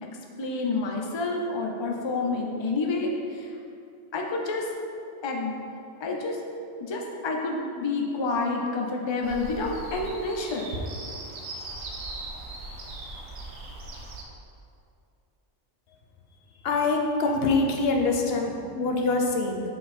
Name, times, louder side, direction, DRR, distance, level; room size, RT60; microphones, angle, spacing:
voice 1, 0.4-3.5 4.1-4.7 5.2-5.6 6.0-6.4 6.8-10.7, left 3 dB, 35° left, 0 dB, 0.5 m, -29 dB
sound 1, 9.2-14.2, right 2 dB, 85° right, 1.3 m, -38 dB
voice 2, 16.6-19.6, left 3 dB, 55° left, 2 dB, 0.9 m, -24 dB
7.4 x 3.9 x 4.3 m, 2.5 s
omnidirectional pair, 1.4 m